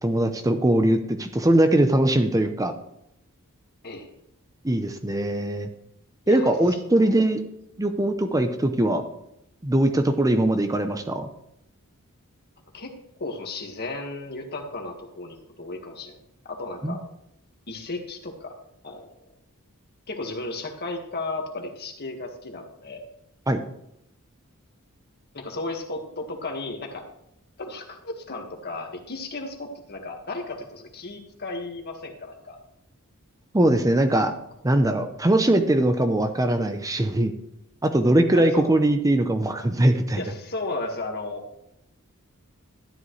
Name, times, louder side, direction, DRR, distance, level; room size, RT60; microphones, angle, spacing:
voice 1, 0.0-2.7 4.6-5.7 6.3-7.4 7.8-9.0 9.6-11.3 16.8-17.0 23.5-23.6 33.5-34.3 34.6-37.3 37.8-40.2, right 1 dB, 15° right, 7 dB, 0.6 m, -21 dB
voice 2, 6.3-7.2 12.7-16.2 16.5-17.0 17.7-18.5 18.8-19.1 20.1-23.1 25.3-27.1 27.6-32.6 38.3-38.7 40.2-41.5, left 2 dB, 50° left, 3 dB, 1.7 m, -34 dB
12.5 x 11.0 x 3.2 m, 0.79 s
head